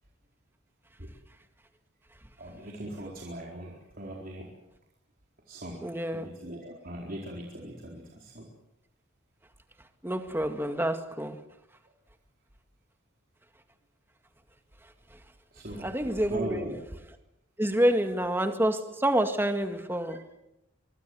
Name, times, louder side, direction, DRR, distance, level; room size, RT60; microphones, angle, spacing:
voice 1, 2.4-4.5 5.5-5.8 6.1-8.5 15.5-16.8 20.1-20.2, right 1 dB, 45° right, 4.2 m, -40 dB
voice 2, 5.8-6.3 10.0-11.4 15.8-16.8 17.6-20.2, right 1 dB, 10° right, 2.0 m, -27 dB
24.5 x 24.0 x 7.8 m
head